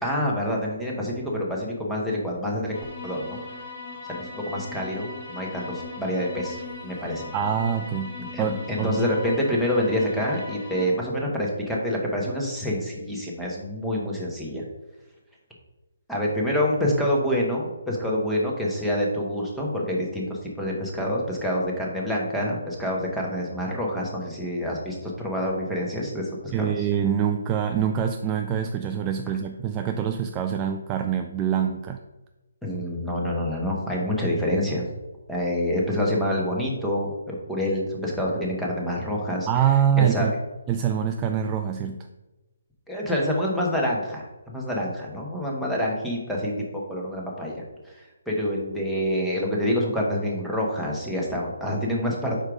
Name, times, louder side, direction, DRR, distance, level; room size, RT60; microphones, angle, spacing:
voice 1, 0.0-2.7 3.0-3.4 4.0-7.3 8.3-14.6 16.1-26.9 32.6-34.8 35.3-39.6 40.0-40.3 42.9-52.4, equal, ahead, -4 dB, 1.1 m, -27 dB
sound 1, 2.7-10.9, left 3 dB, 35° left, 1.4 m, -39 dB
voice 2, 7.3-9.0 26.5-32.0 39.5-40.3 40.7-42.0, right 8 dB, 20° right, 5 dB, 0.3 m, -25 dB
4.9 x 4.4 x 4.8 m, 1.1 s
hypercardioid pair, 155°, 0 cm